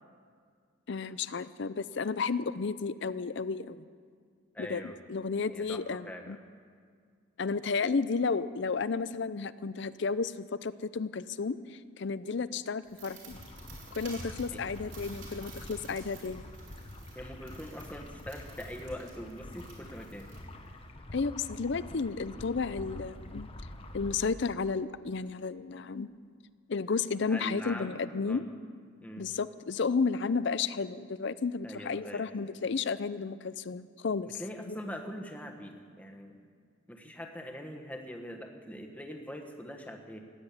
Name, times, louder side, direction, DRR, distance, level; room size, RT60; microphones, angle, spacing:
voice 1, 0.9-3.8 4.6-6.4 7.4-13.4 13.9-16.4 21.1-23.5 23.9-26.1 26.7-28.5 29.2-34.4 34.7-34.8, left 4 dB, 55° left, 16 dB, 0.5 m, -32 dB
voice 2, 4.5-5.0 5.5-6.4 14.5-14.6 17.1-20.3 27.3-28.0 28.2-28.4 29.0-29.3 31.6-32.3 34.2-36.4 36.9-40.2, equal, 5° left, 2 dB, 1.3 m, -43 dB
sound 1, 12.8-20.9, right 4 dB, 65° right, 4.2 m, -53 dB
sound 2, 13.3-24.3, left 1 dB, 25° left, 1.0 m, -46 dB
16.0 x 10.0 x 8.5 m, 2.1 s
head